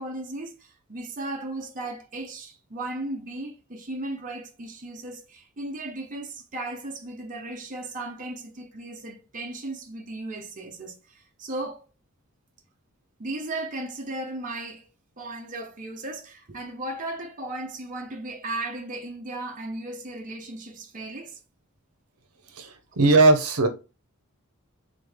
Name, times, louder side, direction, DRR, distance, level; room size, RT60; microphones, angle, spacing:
voice 1, 0.0-11.9 13.2-21.4, right 2 dB, 35° right, 0.8 m, -36 dB
voice 2, 22.5-23.7, right 2 dB, 75° right, 0.8 m, -19 dB
3.9 x 3.5 x 3.5 m
head